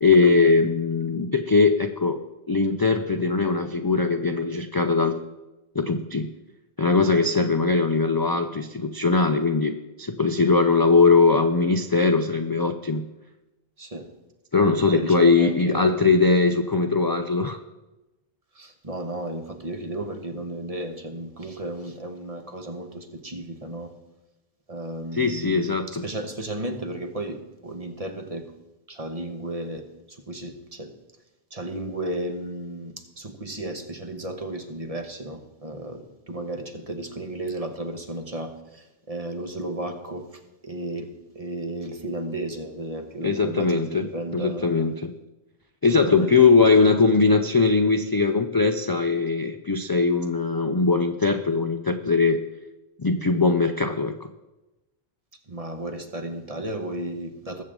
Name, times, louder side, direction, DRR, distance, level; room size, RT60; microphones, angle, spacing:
voice 1, 0.0-2.2 2.5-5.2 5.8-6.3 6.8-13.1 14.5-17.6 25.2-26.0 43.2-44.1 44.3-45.1 45.8-52.4 53.0-54.2, left 4 dB, 35° left, 7 dB, 0.4 m, -20 dB
voice 2, 13.8-14.1 14.9-16.1 18.5-23.9 24.7-28.5 28.9-30.9 31.5-44.7 46.1-46.5 55.5-57.6, right 1 dB, 35° right, 5 dB, 1.2 m, -34 dB
20.5 x 7.4 x 3.7 m, 1.0 s
omnidirectional pair, 1.1 m